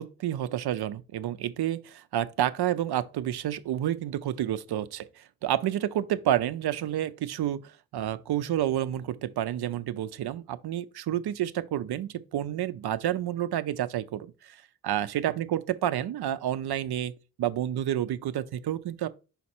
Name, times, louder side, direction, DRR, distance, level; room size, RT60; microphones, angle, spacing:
voice 1, 0.0-17.1 17.4-19.1, right 11 dB, 85° right, 0.5 m, -30 dB
5.7 x 4.2 x 4.3 m
wide cardioid pair, 155°, 38 cm